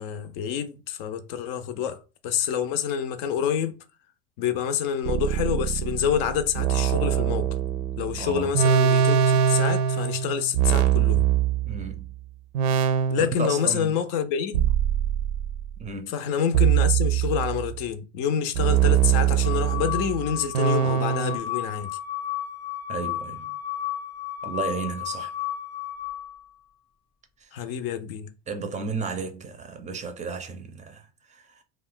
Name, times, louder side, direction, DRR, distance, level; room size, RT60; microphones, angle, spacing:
voice 1, 0.0-2.0 2.2-3.8 4.4-7.5 8.0-11.3 13.1-14.7 16.1-21.9 27.5-28.3, left 8 dB, 55° left, 0.5 m, -27 dB
sound 1, 5.1-12.1 12.5-13.7 14.5-15.7 16.5-17.8 18.5-21.4, right 9 dB, 75° right, 0.6 m, -23 dB
voice 2, 8.2-8.5 11.6-12.1 13.2-13.9 15.8-16.1 22.9-23.6 24.4-25.3 28.5-31.6, right 5 dB, 25° right, 0.5 m, -33 dB
sound 2, 19.4-26.4, left 12 dB, 5° left, 0.8 m, -33 dB
2.4 x 2.2 x 3.7 m
supercardioid pair, 110°, 31 cm